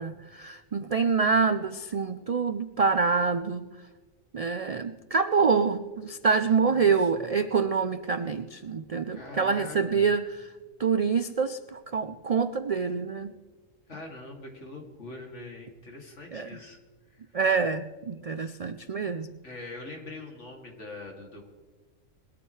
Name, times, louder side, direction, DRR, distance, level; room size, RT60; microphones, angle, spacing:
voice 1, 0.0-3.7 4.3-10.5 10.8-13.3 16.3-16.6 17.3-19.3, right 5 dB, 70° right, 11 dB, 0.3 m, -26 dB
voice 2, 6.6-7.3 9.1-10.1 13.9-16.8 17.1-17.3 19.4-21.5, left 2 dB, 60° left, 1 dB, 3.0 m, -43 dB
21.0 x 13.5 x 3.3 m, 1.4 s
omnidirectional pair, 1.4 m